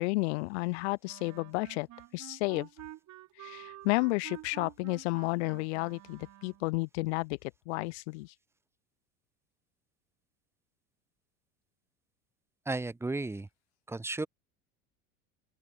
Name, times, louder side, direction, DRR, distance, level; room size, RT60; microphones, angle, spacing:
voice 1, 0.0-1.9 2.1-2.7 3.4-7.4 7.7-8.3, left 25 dB, 55° left, 0.5 m, -32 dB
Wind instrument woodwind instrument, 1.0-6.7, right 14 dB, 45° right, 6.1 m, -49 dB
voice 2, 12.7-13.5 13.9-14.3, right 2 dB, 5° right, 0.8 m, -34 dB
open air
figure-of-eight pair, 70°, 42 cm